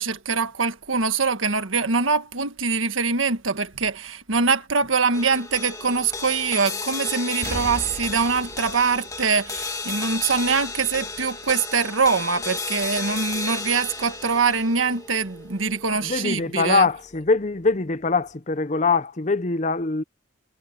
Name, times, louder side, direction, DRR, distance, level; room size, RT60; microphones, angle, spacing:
voice 1, 0.0-16.9, right 5 dB, 90° right, 1.6 m, -23 dB
sound 1, 5.1-17.6, left 3 dB, 15° left, 1.5 m, -34 dB
sound 2, 7.4-10.0 10.4-10.5, right 1 dB, 50° right, 2.7 m, -37 dB
voice 2, 16.0-20.0, left 3 dB, 35° left, 0.7 m, -23 dB
head